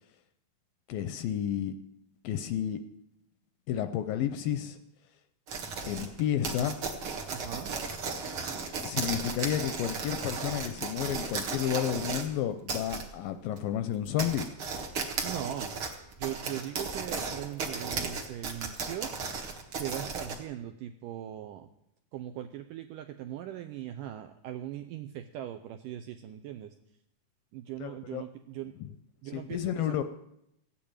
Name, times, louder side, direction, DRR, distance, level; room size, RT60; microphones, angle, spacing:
voice 1, 0.9-1.7 2.2-2.8 3.7-4.8 5.9-6.8 8.8-14.5 27.8-28.2 29.3-30.0, left 10 dB, 80° left, 10 dB, 2.1 m, -31 dB
sound 1, 5.5-12.3 12.7-13.1 13.6-13.7 14.1-20.4, right 4 dB, 50° right, 1.6 m, -35 dB
voice 2, 7.3-7.8 15.2-15.7 16.2-19.1 19.7-21.7 22.1-26.8 27.5-28.7 29.2-30.0, right 12 dB, 80° right, 7 dB, 1.9 m, -40 dB
15.5 x 8.6 x 8.9 m, 0.80 s
omnidirectional pair, 4.5 m